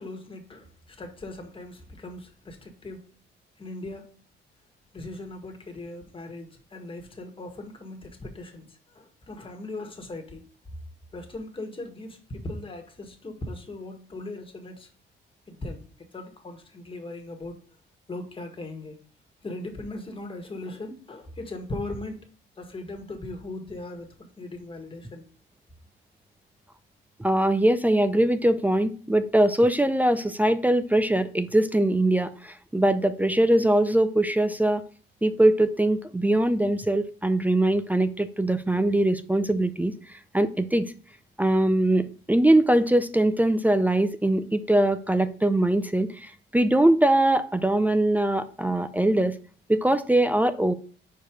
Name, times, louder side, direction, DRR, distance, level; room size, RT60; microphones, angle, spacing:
voice 1, 0.0-3.0 3.6-4.1 4.9-10.4 11.1-14.9 15.5-17.6 18.1-19.0 19.4-22.3 22.6-24.1 24.4-25.2, left 2 dB, 25° left, 1.7 m, -39 dB
voice 2, 27.2-34.8 35.2-39.9 40.3-40.9 41.4-49.4 49.7-50.7, right 1 dB, 10° right, 0.5 m, -22 dB
4.7 x 4.7 x 5.1 m
cardioid pair, 90°, 20 cm